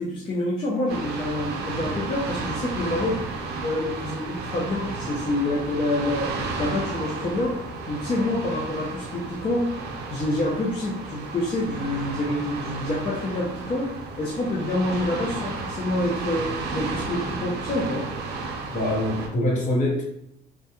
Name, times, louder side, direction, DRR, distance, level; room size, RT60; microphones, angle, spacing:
voice 1, 0.0-3.2 3.6-6.3 6.6-7.6 7.9-9.7 10.1-13.9 14.2-18.1, left 1 dB, 30° left, -5 dB, 0.5 m, -27 dB
sound 1, 0.9-19.3, right 3 dB, 75° right, 0.5 m, -33 dB
voice 2, 18.7-20.0, left 1 dB, 50° left, -4 dB, 1.1 m, -24 dB
2.1 x 2.1 x 2.8 m, 0.79 s
cardioid pair, 110°, 17 cm